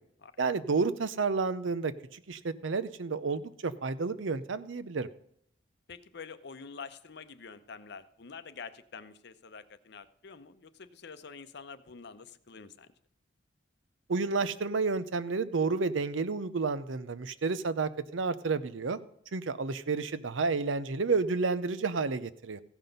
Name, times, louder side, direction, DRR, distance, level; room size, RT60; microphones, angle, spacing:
voice 1, 0.4-5.1 14.1-19.0 19.3-22.6, right 4 dB, 80° right, 14 dB, 0.7 m, -30 dB
voice 2, 5.9-12.9, left 5 dB, 60° left, 12 dB, 0.7 m, -47 dB
15.5 x 6.0 x 5.2 m, 0.69 s
head